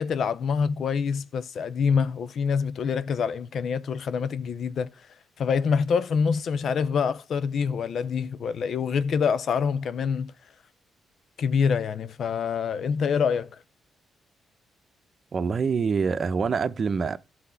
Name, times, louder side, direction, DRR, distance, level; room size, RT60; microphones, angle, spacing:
voice 1, 0.0-4.9 5.4-10.3 11.4-13.6, left 6 dB, 65° left, 0.5 m, -26 dB
voice 2, 15.3-17.2, right 5 dB, 50° right, 0.7 m, -25 dB
11.5 x 4.3 x 5.6 m
supercardioid pair, 60°, 0 cm